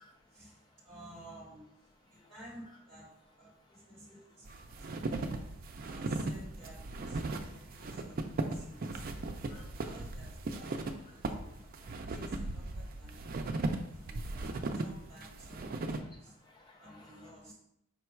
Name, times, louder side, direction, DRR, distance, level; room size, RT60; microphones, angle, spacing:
voice 1, 0.3-1.6 2.1-3.1 3.4-5.2 5.8-9.0 9.5-11.6 12.1-13.3 13.9-16.4 16.8-17.5, right 1 dB, 5° left, -7 dB, 1.1 m, -54 dB
voice 2, 4.5-4.8 5.3-5.5 7.3-8.0 8.8-9.0 9.3-9.6 11.4-12.1 13.4-13.5 13.8-14.0 16.4-17.3, left 2 dB, 20° left, 0 dB, 0.4 m, -61 dB
sound 1, 4.5-16.0, right 2 dB, 45° right, 0.4 m, -37 dB
5.1 x 2.3 x 4.3 m, 0.74 s
head